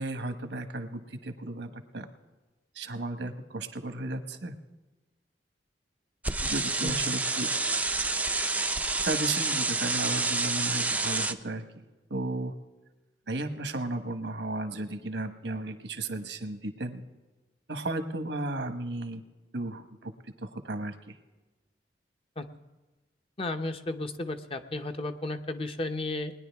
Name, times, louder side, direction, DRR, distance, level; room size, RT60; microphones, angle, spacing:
voice 1, 0.0-2.1 2.7-4.5 6.4-7.5 9.0-11.8 12.1-12.5 13.3-17.0 17.7-19.2 19.5-20.1 20.4-21.2, right 2 dB, 85° right, 8 dB, 1.2 m, -34 dB
sound 1, 6.2-11.3, right 3 dB, 10° right, 0.4 m, -28 dB
voice 2, 23.4-26.3, left 2 dB, 35° left, 7 dB, 0.7 m, -33 dB
20.0 x 10.0 x 3.5 m, 1.2 s
head